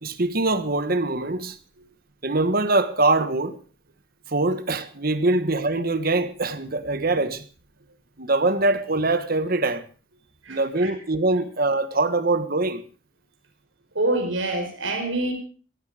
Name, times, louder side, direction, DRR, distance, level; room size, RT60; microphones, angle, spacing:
voice 1, 0.0-1.6 2.2-3.6 4.3-7.5 8.2-9.8 10.5-12.8, right 2 dB, 45° right, 1.4 m, -23 dB
voice 2, 10.5-10.9 14.0-15.3, right 2 dB, 70° right, 5.2 m, -26 dB
17.0 x 15.0 x 5.0 m
head